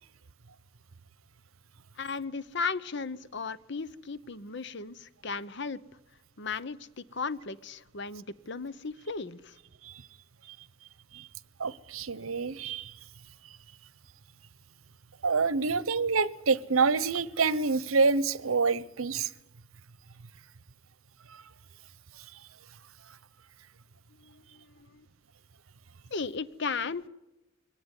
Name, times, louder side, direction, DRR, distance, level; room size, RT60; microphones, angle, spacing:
voice 1, 2.0-5.8 6.4-9.6 24.2-25.1 26.1-27.1, left 4 dB, 55° left, 0.9 m, -36 dB
voice 2, 11.6-12.9 15.2-19.3, right 4 dB, 80° right, 0.9 m, -27 dB
22.5 x 18.0 x 9.6 m
head